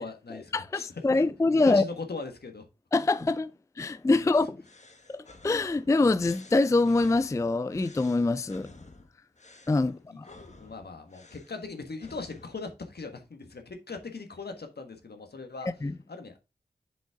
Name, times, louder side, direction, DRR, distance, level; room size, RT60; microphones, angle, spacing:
voice 1, 0.0-1.2 1.5-2.6 4.1-4.3 9.8-15.7 16.1-16.4, left 3 dB, 70° left, 1.5 m, -40 dB
voice 2, 0.5-1.8 2.9-3.5 3.8-4.6 5.1-8.7 9.7-10.3 15.8-15.9, left 3 dB, 20° left, 0.3 m, -24 dB
sound 1, 4.6-12.6, left 2 dB, 40° left, 1.3 m, -53 dB
7.3 x 5.6 x 3.6 m
wide cardioid pair, 65°, 17 cm